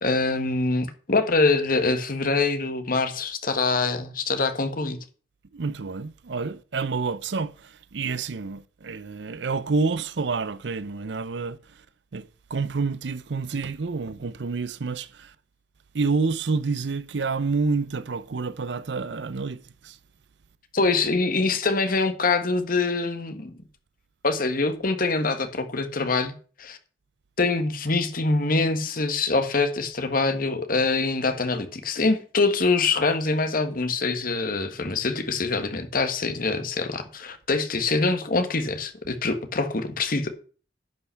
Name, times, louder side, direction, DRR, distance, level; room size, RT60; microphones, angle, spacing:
voice 1, 0.0-5.0 20.7-23.6 24.2-26.3 26.6-26.8 27.4-40.3, left 3 dB, 50° left, 1.5 m, -24 dB
voice 2, 5.5-11.6 12.1-15.3 15.9-20.0, right 4 dB, 75° right, 0.6 m, -28 dB
11.0 x 5.6 x 5.7 m
head